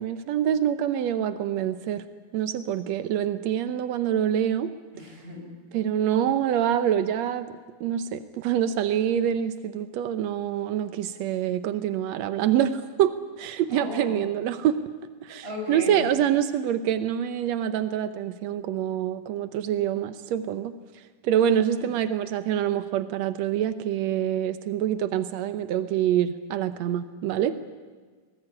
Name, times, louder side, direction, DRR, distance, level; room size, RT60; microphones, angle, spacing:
voice 1, 0.0-2.0 2.3-4.7 5.7-7.5 7.8-14.8 15.2-20.7 21.2-27.5, right 10 dB, 85° right, 11 dB, 1.5 m, -26 dB
voice 2, 4.9-5.5 13.7-14.2 15.4-16.1 21.7-21.8, left 2 dB, 15° right, -1 dB, 8.0 m, -35 dB
24.0 x 20.0 x 9.8 m, 1.5 s
omnidirectional pair, 4.3 m